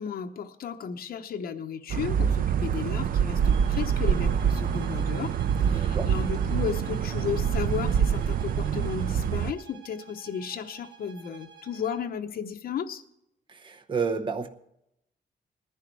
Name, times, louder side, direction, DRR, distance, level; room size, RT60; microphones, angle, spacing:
voice 1, 0.0-5.3 5.6-13.0, left 7 dB, 60° left, 1.0 m, -34 dB
sound 1, 1.9-9.5, right 8 dB, 55° right, 0.5 m, -25 dB
sound 2, 3.4-12.1, right 8 dB, 90° right, 1.9 m, -50 dB
voice 2, 5.6-6.1 13.5-14.5, right 5 dB, 30° right, 0.8 m, -31 dB
19.5 x 10.5 x 4.7 m
wide cardioid pair, 175°, 17 cm